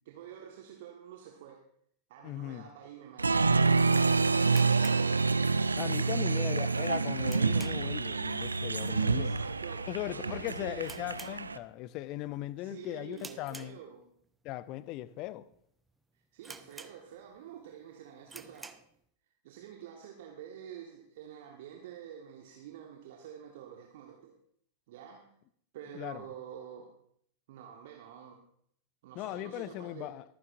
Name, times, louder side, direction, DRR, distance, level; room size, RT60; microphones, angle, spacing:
voice 1, 0.0-1.6 2.1-5.1 5.9-6.5 9.1-10.9 12.6-14.1 16.3-18.8 19.4-24.4 24.9-25.3 25.7-26.9 27.5-28.4 29.0-30.1, right 9 dB, 55° right, 1.3 m, -48 dB
voice 2, 2.2-2.7 5.8-9.4 9.9-13.8 14.4-15.5 25.9-26.2 29.2-30.2, left 15 dB, 40° left, 0.5 m, -38 dB
Applause, 3.2-11.6, right 4 dB, 80° right, 0.4 m, -28 dB
sound 1, 4.5-5.8 6.1-6.2 6.7-8.1 8.4-8.7 8.9-9.0 9.7-10.0 10.3-10.4 10.8-12.0 12.3-12.6 13.1-14.3 14.8-14.9 15.5-15.6 15.9-16.0 16.4-17.4 17.8-17.9 18.2-19.0, right 3 dB, 10° right, 0.6 m, -49 dB
24.0 x 9.6 x 2.5 m
figure-of-eight pair, 90°, 0 cm